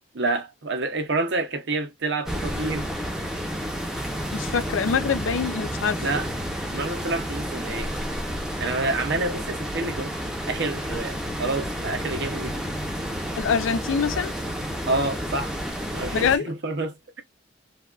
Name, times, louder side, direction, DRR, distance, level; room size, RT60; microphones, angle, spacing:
voice 1, 0.1-2.9 6.0-6.3 6.7-7.9 8.6-10.1 10.5-12.6 14.8-15.6 15.9-17.2, right 3 dB, 60° right, 0.7 m, -28 dB
sound 1, 2.3-16.4, equal, 5° right, 0.6 m, -30 dB
voice 2, 4.3-6.0 13.4-14.3 16.1-16.5, left 6 dB, 75° left, 0.4 m, -24 dB
3.3 x 2.3 x 2.3 m
head